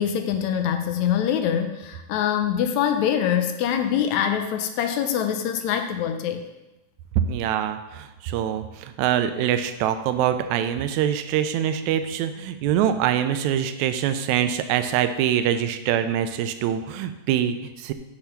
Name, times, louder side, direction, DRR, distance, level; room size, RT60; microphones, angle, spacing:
voice 1, 0.0-6.4, left 9 dB, 80° left, 7 dB, 1.7 m, -24 dB
voice 2, 7.3-17.9, right 10 dB, 80° right, 9 dB, 1.8 m, -24 dB
6.9 x 5.4 x 5.9 m, 1.0 s
omnidirectional pair, 3.7 m